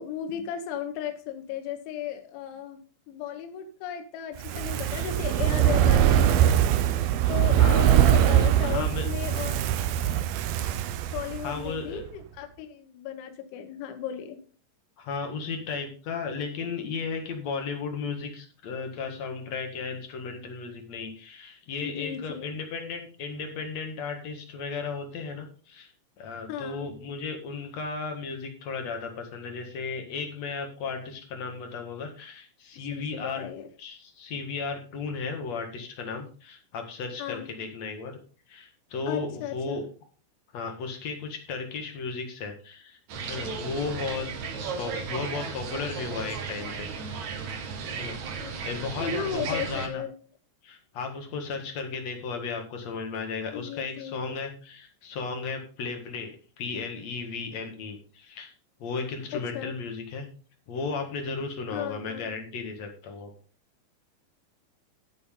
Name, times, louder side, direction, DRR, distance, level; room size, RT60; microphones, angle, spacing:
voice 1, 0.0-6.5 7.3-9.6 11.1-14.4 21.8-22.5 26.5-26.9 32.8-33.7 37.2-37.5 39.1-39.8 44.2-44.3 48.4-48.5 49.0-50.1 53.5-54.3 59.3-59.8 61.7-62.3, left 9 dB, 85° left, 7 dB, 3.5 m, -35 dB
Fire, 4.4-11.7 12.0-12.1, right 11 dB, 85° right, 2.1 m, -22 dB
voice 2, 7.2-7.9 8.6-9.3 11.4-12.0 15.0-25.9 26.2-33.5 33.8-38.2 38.5-39.8 40.5-43.0 43.3-44.3 44.8-47.3 48.0-48.2 48.6-50.0 50.6-58.5 58.8-60.3 60.7-63.3, left 4 dB, 50° left, 4 dB, 2.2 m, -35 dB
sound 1, 43.1-49.9, right 5 dB, 60° right, 2.0 m, -35 dB
11.0 x 9.3 x 3.8 m, 0.40 s
omnidirectional pair, 5.3 m